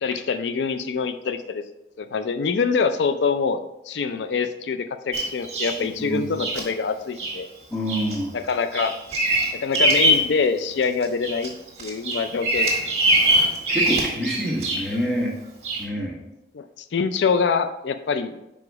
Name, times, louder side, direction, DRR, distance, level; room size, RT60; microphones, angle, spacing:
voice 1, 0.0-1.6 2.0-3.6 3.9-7.5 8.3-9.0 9.6-11.5 11.8-12.7 16.5-16.6 16.9-18.4, left 5 dB, 85° left, 10 dB, 0.4 m, -24 dB
Bird vocalization bird call bird song, 5.1-5.8 6.4-6.6 7.2-7.4 7.9-8.2 8.5-10.3 10.7-11.5 11.8-15.0 15.6-15.8, right 1 dB, 40° right, 1.5 m, -22 dB
voice 2, 6.0-6.3 7.7-8.3 13.7-15.3 15.8-16.2, equal, 5° left, -4 dB, 1.3 m, -26 dB
5.1 x 4.9 x 4.7 m, 0.91 s
head